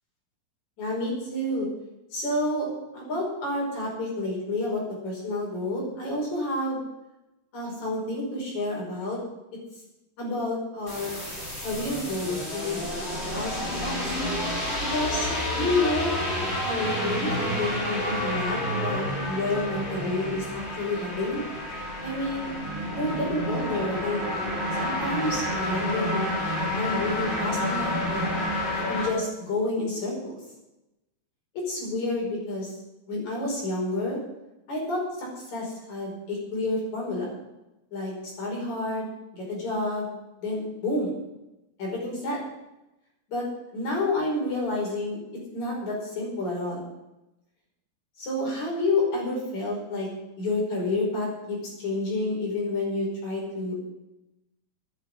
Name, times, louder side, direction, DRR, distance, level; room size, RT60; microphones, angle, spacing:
voice 1, 0.8-1.7 2.1-2.7 2.9-6.8 7.5-9.2 10.2-11.1 11.6-12.8 13.3-14.1 14.9-15.3 15.5-16.1 16.6-21.4 22.0-22.5 22.9-24.3 24.8-26.3 26.7-28.3 28.9-30.4 31.5-32.7 33.1-34.2 34.7-37.3 37.9-40.1 40.4-41.1 41.8-42.4 43.3-43.4 43.7-45.2 45.5-46.8 48.2-50.1 50.4-53.7, left 2 dB, 55° left, -3 dB, 6.5 m, -29 dB
sound 1, 10.9-29.1, left 1 dB, 20° left, 3.6 m, -29 dB
10.5 x 10.0 x 9.8 m, 0.95 s
omnidirectional pair, 4.1 m